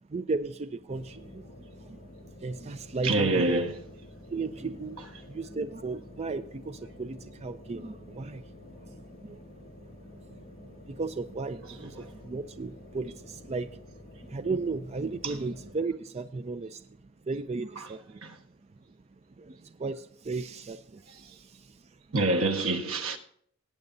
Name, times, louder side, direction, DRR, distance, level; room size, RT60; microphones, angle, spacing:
voice 1, 0.1-2.1 2.4-3.6 4.3-8.4 8.8-8.9 9.2-9.4 10.2-10.4 10.7-13.8 14.2-17.0 17.2-18.2 19.4-21.8, right 3 dB, 30° right, 0.4 m, -35 dB
sound 1, 0.9-15.7, left 1 dB, 45° left, 2.0 m, -50 dB
voice 2, 3.0-3.8 5.0-5.1 11.6-11.9 15.2-15.4 17.7-17.9 18.2-18.4 22.1-23.2, right 2 dB, 85° right, 1.4 m, -27 dB
18.5 x 8.9 x 2.7 m
head